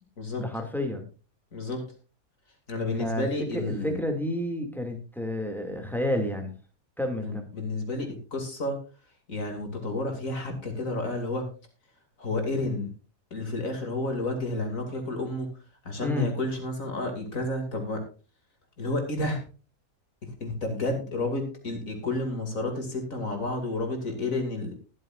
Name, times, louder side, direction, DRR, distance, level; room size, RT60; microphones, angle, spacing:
voice 1, 0.4-1.1 3.0-3.3 3.5-6.5 7.0-7.5 16.0-16.3, left 1 dB, ahead, 3 dB, 2.2 m, -30 dB
voice 2, 1.5-1.8 2.7-4.0 7.2-8.8 9.3-11.5 12.2-12.9 13.3-15.5 15.8-18.0 18.8-19.4 20.2-24.7, left 2 dB, 55° left, 4 dB, 3.0 m, -31 dB
20.5 x 7.7 x 2.5 m, 0.34 s
omnidirectional pair, 1.7 m